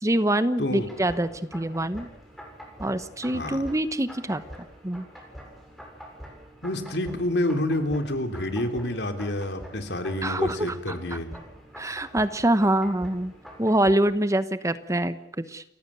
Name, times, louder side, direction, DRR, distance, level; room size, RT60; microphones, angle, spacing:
voice 1, 0.0-2.1 2.8-4.4 4.8-5.1 10.2-10.7 11.8-13.3 13.6-15.6, right 1 dB, 20° right, 12 dB, 1.1 m, -25 dB
voice 2, 0.6-0.9 3.3-3.6 6.6-11.3, left 1 dB, 70° left, 7 dB, 3.2 m, -28 dB
sound 1, 0.8-13.9, equal, ahead, 7.7 m, -45 dB
29.5 x 15.0 x 8.4 m, 0.74 s
head